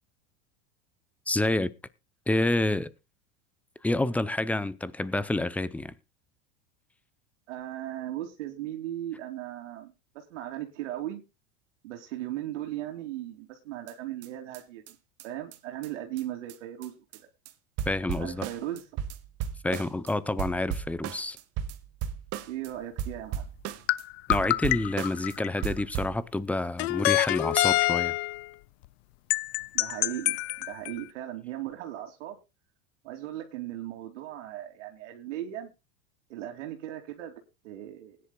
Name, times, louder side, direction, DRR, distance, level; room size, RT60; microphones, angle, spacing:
voice 1, 1.3-1.7 2.3-2.9 3.8-5.9 17.9-18.5 19.6-21.4 24.3-28.2, left 2 dB, 5° left, 0.5 m, -28 dB
voice 2, 7.5-11.2 11.8-14.8 15.2-16.9 18.2-18.8 22.5-23.5 29.7-32.4 33.0-35.7 36.3-37.3 37.6-38.2, right 13 dB, 85° right, 2.7 m, -37 dB
sound 1, 13.9-14.0 14.2-14.3 14.5-14.6 14.9-15.0 15.2-15.3 15.5-15.6 15.8-15.9 16.2-16.3 16.5-16.6 16.8-17.2 17.5-17.6 17.8-20.1 20.4-22.7 23.0-24.0 24.3-25.4 25.6-26.2, right 9 dB, 45° right, 1.4 m, -35 dB
sound 2, 23.9-25.8 26.8-28.5 29.3-31.0, left 21 dB, 60° left, 0.6 m, -26 dB
20.0 x 10.0 x 2.3 m
supercardioid pair, 145°, 36 cm